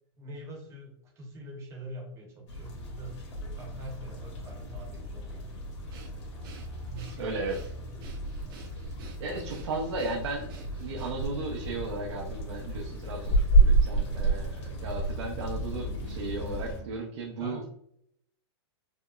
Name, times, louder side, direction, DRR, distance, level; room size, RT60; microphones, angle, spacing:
voice 1, 0.2-5.7 6.9-7.5 15.8-16.0 17.4-17.7, right 1 dB, 20° right, 0 dB, 0.8 m, -44 dB
sound 1, 2.5-16.8, right 2 dB, 80° left, 1.5 m, -30 dB
Breathing, 5.9-11.4, right 6 dB, 50° right, 0.6 m, -51 dB
voice 2, 7.2-7.7 9.2-17.7, right 2 dB, 85° right, -2 dB, 0.7 m, -35 dB
5.0 x 2.1 x 2.3 m, 0.69 s
supercardioid pair, 160°, 14 cm